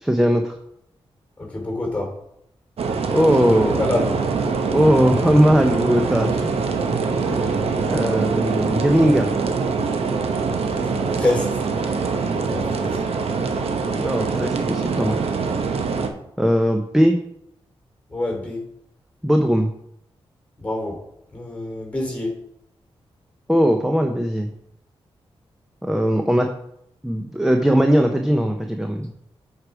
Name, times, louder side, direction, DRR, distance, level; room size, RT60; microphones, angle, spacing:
voice 1, 0.0-0.5 3.1-3.8 4.7-6.5 7.3-7.5 7.9-9.4 14.0-15.2 16.4-17.2 19.2-19.7 23.5-24.5 25.8-26.5 27.0-29.1, equal, 5° right, 4 dB, 0.6 m, -19 dB
voice 2, 1.4-2.1 3.8-4.2 6.4-6.7 7.1-7.4 11.1-11.6 12.4-13.0 18.1-18.6 20.6-21.0 21.3-22.3, left 2 dB, 15° left, 0 dB, 2.9 m, -26 dB
sound 1, 2.8-16.1, right 4 dB, 75° right, 0.8 m, -24 dB
7.9 x 4.8 x 4.7 m, 0.75 s
wide cardioid pair, 110°, 10 cm